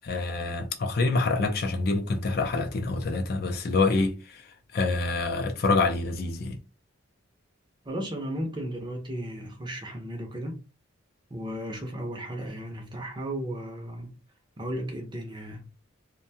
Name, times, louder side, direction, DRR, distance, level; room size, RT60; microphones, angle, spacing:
voice 1, 0.0-4.4 4.7-6.6, left 3 dB, 45° left, 0.4 m, -26 dB
voice 2, 7.9-10.6 11.3-14.1 14.6-15.7, right 1 dB, 20° right, 0.6 m, -35 dB
2.6 x 2.2 x 2.7 m
head